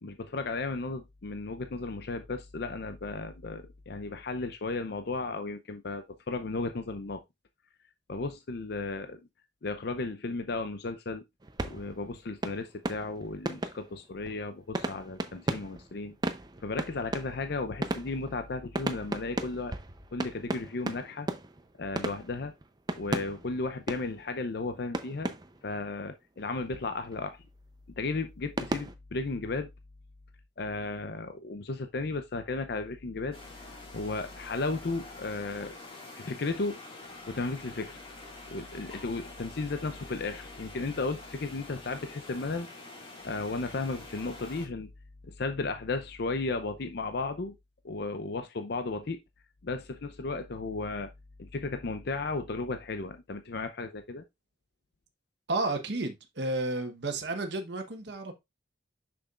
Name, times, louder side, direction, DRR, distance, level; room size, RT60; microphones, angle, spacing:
voice 1, 0.0-7.2 8.1-9.2 9.6-11.2 11.6-16.2 16.6-19.7 20.1-21.3 21.8-22.5 23.0-25.3 25.6-27.4 28.0-29.7 30.6-33.4 33.9-35.8 36.1-36.8 37.3-38.0 38.5-42.7 43.2-44.9 45.2-47.5 47.8-49.2 49.6-51.1 51.4-54.2, left 3 dB, 60° left, 0.6 m, -34 dB
sound 1, 11.4-24.6 24.9-25.9 26.4-27.3 28.6-29.0, right 2 dB, 20° right, 0.6 m, -37 dB
sound 2, 33.3-44.7, left 2 dB, 30° left, 2.0 m, -47 dB
voice 2, 55.5-58.3, right 2 dB, 65° right, 1.1 m, -32 dB
6.7 x 6.1 x 2.4 m
head